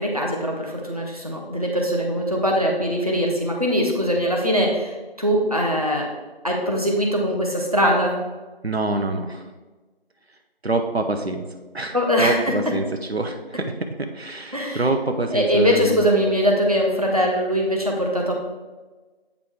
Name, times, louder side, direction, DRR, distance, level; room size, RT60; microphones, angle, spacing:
voice 1, 0.0-6.1 6.4-8.2 11.9-12.4 14.5-14.9 15.3-18.3, equal, 35° right, -1 dB, 0.9 m, -21 dB
voice 2, 8.6-9.4 10.6-11.4 11.7-16.0, right 2 dB, 75° right, 5 dB, 0.8 m, -26 dB
8.3 x 5.1 x 3.6 m, 1.2 s
figure-of-eight pair, 175°, 32 cm